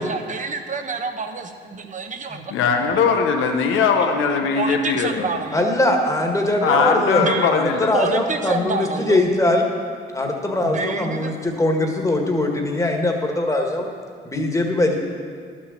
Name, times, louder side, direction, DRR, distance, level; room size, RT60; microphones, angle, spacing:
voice 1, 0.0-2.4 4.6-5.6 7.2-7.5 7.9-9.2 10.6-11.3, right 4 dB, 40° right, 6 dB, 1.0 m, -27 dB
voice 2, 2.5-5.4 6.6-7.9, left 5 dB, 85° left, 4 dB, 1.0 m, -20 dB
voice 3, 5.5-9.7 10.1-13.9 14.3-15.0, left 1 dB, 15° left, 2 dB, 1.7 m, -21 dB
11.5 x 6.4 x 7.3 m, 2.1 s
cardioid pair, 90°, 20 cm